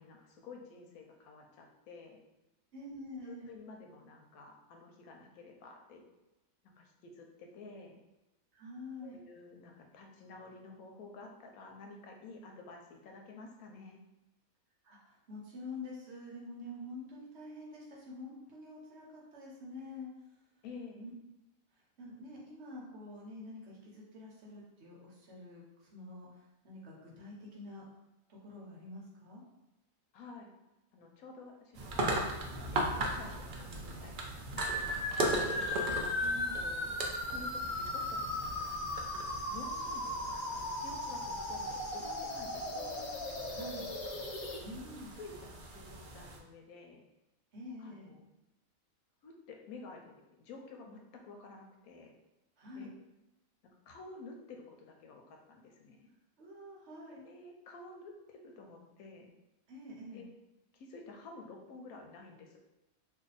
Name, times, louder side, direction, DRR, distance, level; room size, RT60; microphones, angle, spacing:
voice 1, 0.0-2.2 3.2-6.0 6.6-8.0 9.0-14.0 20.6-21.0 30.1-30.5 30.9-32.2 32.5-34.2 34.7-35.8 36.6-37.0 37.3-38.5 39.5-43.5 43.8-44.0 44.7-44.8 45.2-47.0 47.8-48.3 49.2-52.1 52.7-52.9 53.9-56.1 57.2-59.3 60.1-60.2 60.7-62.6, left 3 dB, 90° left, 2 dB, 1.1 m, -51 dB
voice 2, 2.7-3.5 8.5-9.2 14.8-20.1 21.0-21.1 22.0-25.6 25.9-26.3 26.6-27.8 28.3-29.4 36.1-36.6 42.5-43.2 43.5-43.9 44.6-45.1 47.5-48.2 52.6-52.9 56.4-57.2 59.7-60.2, left 2 dB, 55° right, -3 dB, 1.1 m, -47 dB
sound 1, 31.7-46.4, right 2 dB, 85° right, 0.4 m, -39 dB
sound 2, 34.6-44.6, left 2 dB, 65° left, 0.8 m, -37 dB
2.6 x 2.6 x 3.9 m, 0.97 s
omnidirectional pair, 1.4 m